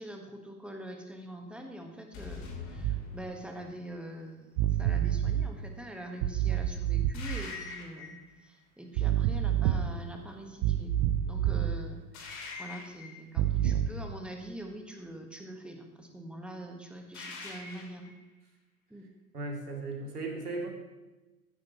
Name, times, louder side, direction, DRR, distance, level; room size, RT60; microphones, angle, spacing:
voice 1, 0.0-8.2 8.4-10.9 11.2-18.1 18.9-19.1, right 1 dB, ahead, 3 dB, 1.4 m, -44 dB
sound 1, 2.1-3.8 7.1-8.3 12.1-13.3 17.1-18.1, left 4 dB, 35° left, 3.6 m, -43 dB
sound 2, 2.8-3.0 4.6-5.5 6.2-7.4 9.0-10.0 10.6-11.8 13.4-13.9, right 11 dB, 30° right, 0.5 m, -28 dB
voice 2, 19.3-20.7, right 3 dB, 85° right, 0 dB, 2.8 m, -36 dB
15.0 x 10.5 x 3.0 m, 1.1 s
figure-of-eight pair, 105°, 45 cm